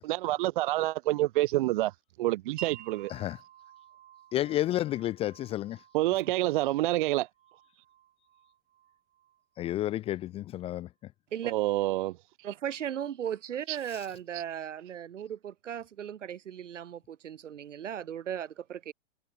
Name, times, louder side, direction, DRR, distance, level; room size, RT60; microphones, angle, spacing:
voice 1, 0.0-3.1 5.9-7.3 11.5-12.2 13.7-13.8 14.3-14.4, right 17 dB, 45° right, 0.5 m, -28 dB
Wind chime, 2.6-10.2, right 12 dB, 25° right, 7.0 m, -52 dB
voice 2, 4.3-5.8 9.6-10.9, left 13 dB, 15° left, 0.5 m, -31 dB
voice 3, 12.4-18.9, right 9 dB, 75° right, 3.6 m, -37 dB
hypercardioid pair, 135°, 37 cm